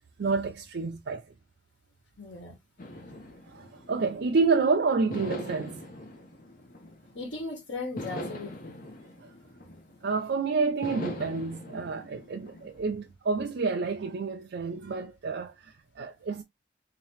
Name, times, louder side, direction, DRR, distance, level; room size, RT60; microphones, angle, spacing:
voice 1, 0.2-1.2 3.5-5.8 10.0-16.4, right 4 dB, 65° right, 0.5 m, -29 dB
voice 2, 2.2-2.6 7.1-8.8, left 3 dB, 80° left, 1.5 m, -37 dB
sound 1, 2.8-4.5 5.1-7.4 8.0-10.2 10.8-13.1, left 1 dB, 50° left, 0.9 m, -42 dB
3.8 x 2.9 x 3.1 m
head